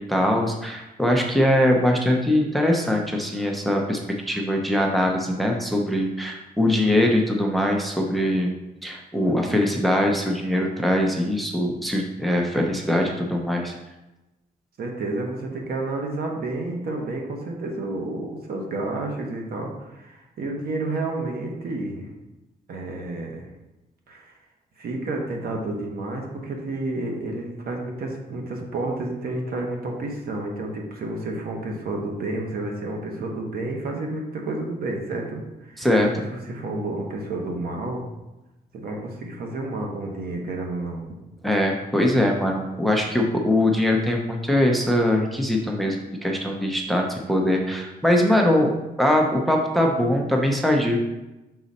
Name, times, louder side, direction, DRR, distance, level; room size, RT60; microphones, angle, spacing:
voice 1, 0.0-4.0 4.3-8.5 8.8-13.7 35.8-36.1 41.4-48.7 49.0-51.0, left 1 dB, ahead, 1 dB, 0.6 m, -22 dB
voice 2, 14.8-22.1 22.7-23.5 24.1-24.4 24.8-35.9 36.2-38.0 38.7-41.1, right 2 dB, 70° right, 1 dB, 1.2 m, -30 dB
6.1 x 4.0 x 4.1 m, 1.0 s
wide cardioid pair, 150°, 16 cm